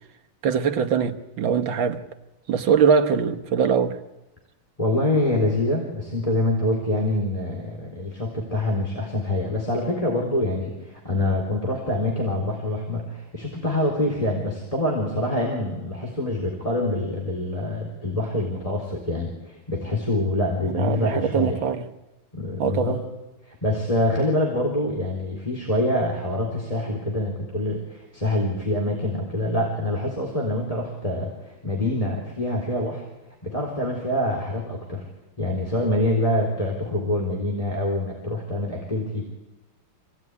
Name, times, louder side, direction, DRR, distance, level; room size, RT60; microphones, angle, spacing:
voice 1, 0.4-2.0 2.5-4.0 20.6-21.9 22.6-23.0, right 6 dB, 65° right, 1.8 m, -22 dB
voice 2, 4.8-21.6 22.3-23.0 23.5-33.1 33.4-35.0 35.4-39.2, left 1 dB, 15° left, 3.8 m, -25 dB
26.0 x 18.0 x 9.6 m
omnidirectional pair, 2.3 m